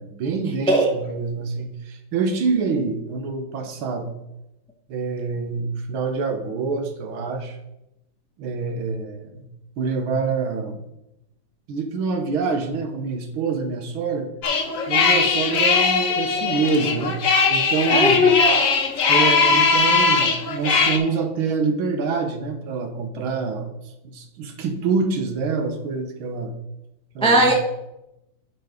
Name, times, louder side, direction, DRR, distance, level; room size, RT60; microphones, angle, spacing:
voice 1, 0.0-4.2 4.9-7.6 8.4-9.5 9.8-10.8 11.7-14.3 14.9-17.2 17.5-18.2 19.1-23.7 24.0-26.5 27.2-27.5, right 4 dB, 85° right, 1.8 m, -26 dB
sound 1, 14.4-21.0, left 4 dB, 50° left, 1.1 m, -19 dB
voice 2, 17.9-18.7 27.2-27.5, equal, 10° left, 0.3 m, -17 dB
9.3 x 4.2 x 5.0 m
omnidirectional pair, 2.2 m